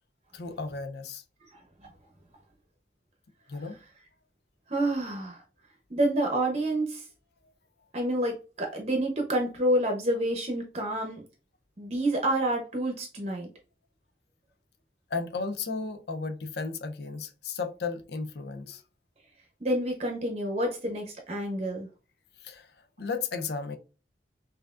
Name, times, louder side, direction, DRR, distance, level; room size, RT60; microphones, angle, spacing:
voice 1, 0.3-1.2 3.5-3.8 7.4-7.5 15.1-18.8 22.4-23.8, left 4 dB, 70° left, 0.6 m, -34 dB
voice 2, 4.7-5.4 5.9-7.0 7.9-11.2 11.8-13.5 19.6-21.9, right 1 dB, 35° right, 0.7 m, -28 dB
5.5 x 2.6 x 2.4 m
head